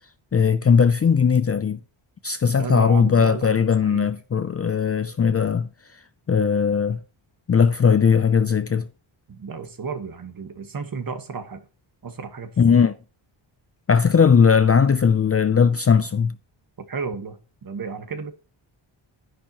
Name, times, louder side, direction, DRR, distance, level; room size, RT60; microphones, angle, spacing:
voice 1, 0.3-1.8 2.2-5.7 6.3-7.0 7.5-8.9 12.6-12.9 13.9-16.3, left 6 dB, 30° left, 0.5 m, -18 dB
voice 2, 2.6-3.5 3.8-4.1 9.3-11.6 12.0-12.8 16.8-18.3, right 5 dB, 45° right, 1.4 m, -33 dB
10.0 x 10.0 x 3.0 m
wide cardioid pair, 120°, 48 cm